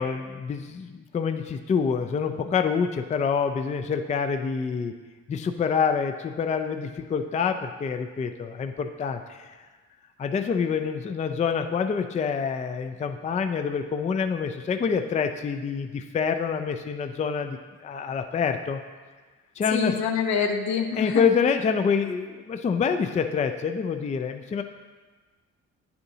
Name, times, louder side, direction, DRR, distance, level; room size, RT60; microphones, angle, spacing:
voice 1, 0.0-4.9 5.3-9.5 10.2-17.6 17.8-18.8 19.6-19.9 21.0-24.6, left 6 dB, 25° left, 7 dB, 0.4 m, -26 dB
voice 2, 19.7-21.2, left 6 dB, 75° left, 4 dB, 0.7 m, -26 dB
9.0 x 6.9 x 2.8 m, 1.4 s
cardioid pair, 95°, 29 cm